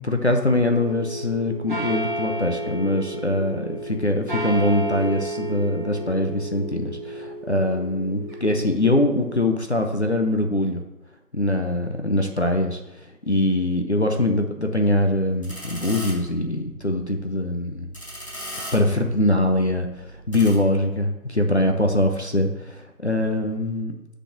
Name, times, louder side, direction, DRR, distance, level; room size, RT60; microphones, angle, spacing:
voice 1, 0.0-10.8 11.3-17.9 18.7-23.9, left 1 dB, 45° left, 4 dB, 0.7 m, -23 dB
sound 1, 0.7-9.5, right 1 dB, 30° right, 1.1 m, -32 dB
sound 2, 15.4-20.5, equal, 20° left, 2.2 m, -39 dB
6.5 x 4.1 x 6.3 m, 0.95 s
figure-of-eight pair, 170°, 47 cm